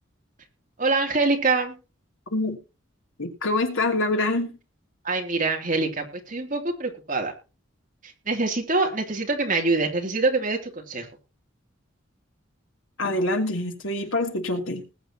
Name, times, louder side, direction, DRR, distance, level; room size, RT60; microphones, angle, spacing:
voice 1, 0.8-1.8 5.0-7.3 8.3-11.1, right 3 dB, 40° right, 2.8 m, -24 dB
voice 2, 3.2-4.6 13.0-14.8, left 2 dB, 80° left, 2.8 m, -25 dB
20.0 x 8.1 x 2.9 m
head